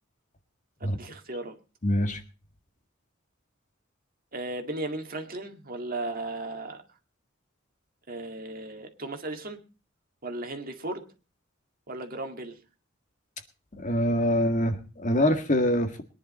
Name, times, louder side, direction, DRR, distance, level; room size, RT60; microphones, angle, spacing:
voice 1, 0.8-1.5 4.3-6.8 8.1-9.6 10.2-11.0 11.9-12.6, right 2 dB, 45° right, 4 dB, 2.1 m, -36 dB
voice 2, 1.8-2.2 13.8-16.0, left 1 dB, 40° left, 6 dB, 1.8 m, -24 dB
22.0 x 10.5 x 4.3 m, 0.35 s
head